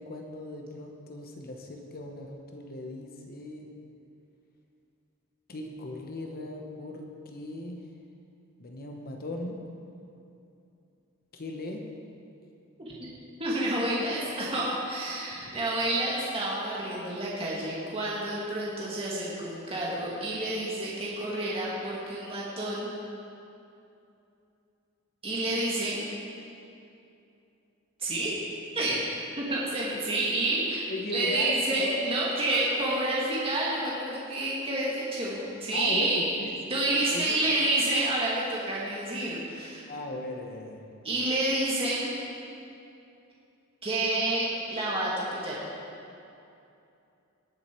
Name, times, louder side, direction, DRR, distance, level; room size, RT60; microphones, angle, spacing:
voice 1, 0.0-3.7 5.5-7.8 8.6-9.6 11.3-11.8 15.3-15.6 30.9-31.9 35.7-36.6 37.1-37.3 39.9-40.8, left 2 dB, 45° left, 2 dB, 1.0 m, -37 dB
voice 2, 13.4-22.9 25.2-26.0 28.0-28.3 28.8-29.0 29.4-36.2 36.7-39.8 41.0-42.1 43.8-45.6, right 1 dB, 25° right, -6 dB, 1.9 m, -29 dB
19.0 x 7.8 x 4.5 m, 2.7 s
head